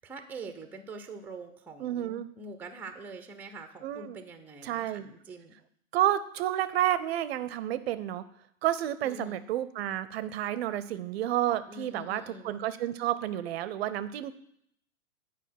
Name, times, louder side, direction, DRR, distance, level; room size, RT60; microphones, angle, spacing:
voice 1, 0.0-5.6 9.0-9.4 11.7-12.5, right 2 dB, 5° right, 8 dB, 0.6 m, -44 dB
voice 2, 1.8-2.3 3.8-4.2 4.6-5.1 5.9-8.2 8.6-14.3, right 12 dB, 50° right, 14 dB, 0.6 m, -30 dB
9.0 x 4.9 x 5.8 m, 0.72 s
hypercardioid pair, 110°, 41 cm